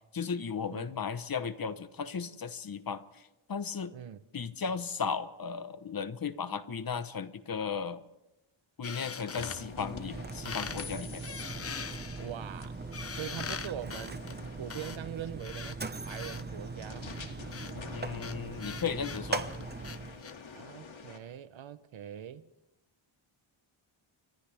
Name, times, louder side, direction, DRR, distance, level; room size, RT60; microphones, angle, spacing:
voice 1, 0.1-3.0 3.5-3.9 4.3-8.0 8.8-11.2 17.9-19.5, left 6 dB, 45° left, 1.0 m, -35 dB
voice 2, 3.9-4.2 12.2-12.8 13.1-14.2 14.6-17.1 20.5-22.4, right 10 dB, 70° right, 0.9 m, -42 dB
sound 1, 8.8-10.2 10.4-10.9 11.2-16.4 17.1-20.3, left 6 dB, 30° left, 0.6 m, -42 dB
sound 2, 9.2-21.2, left 5 dB, 70° left, 2.4 m, -48 dB
Mechanisms, 9.5-20.3, right 3 dB, 20° right, 0.8 m, -40 dB
30.0 x 25.0 x 3.5 m
wide cardioid pair, 150°, 48 cm